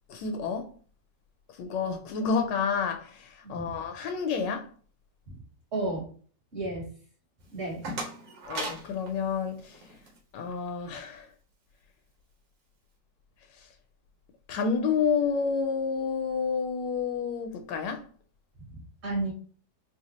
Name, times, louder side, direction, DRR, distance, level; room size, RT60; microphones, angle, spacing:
voice 1, 0.1-0.7 1.6-3.1 3.5-4.7 8.5-9.6 10.3-11.3 14.5-18.0, left 5 dB, 80° left, 1.2 m, -29 dB
voice 2, 3.4-3.7 5.3-5.4 5.7-6.1 6.5-6.9 7.5-7.9 18.7-19.3, right 2 dB, 40° right, 1.8 m, -33 dB
sound 1, 7.4-10.2, right 2 dB, 85° right, 1.8 m, -39 dB
4.0 x 2.3 x 2.9 m
omnidirectional pair, 1.9 m